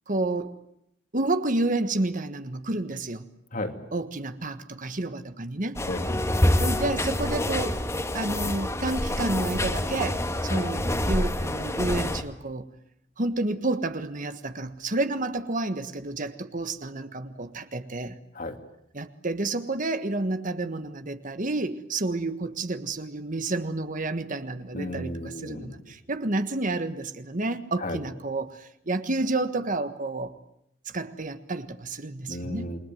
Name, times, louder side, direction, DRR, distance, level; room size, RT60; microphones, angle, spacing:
voice 1, 0.1-0.5 1.1-3.3 3.9-5.8 6.6-7.8 8.1-12.7 13.2-18.2 18.9-30.3 30.8-32.7, right 2 dB, 45° right, 10 dB, 1.5 m, -30 dB
voice 2, 3.5-3.9 5.9-6.3 10.5-10.7 18.3-18.6 24.7-25.9 27.8-28.0 32.3-32.8, left 1 dB, 45° left, 6 dB, 2.8 m, -34 dB
sound 1, 5.8-12.2, left 1 dB, 15° left, 1.7 m, -27 dB
28.5 x 22.5 x 9.3 m, 0.78 s
head